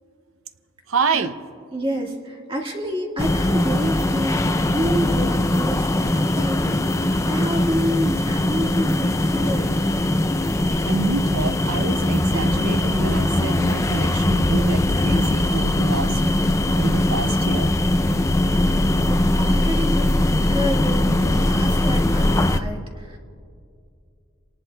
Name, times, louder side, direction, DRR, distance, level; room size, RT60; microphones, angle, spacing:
voice 1, 0.9-1.3 10.8-16.2 16.8-17.7, right 4 dB, 75° right, 10 dB, 0.6 m, -27 dB
voice 2, 1.7-9.7 18.5-23.2, equal, 25° right, 0 dB, 1.6 m, -29 dB
sound 1, 3.2-22.6, left 1 dB, 15° left, 0.4 m, -20 dB
28.0 x 18.5 x 2.2 m, 2.4 s
head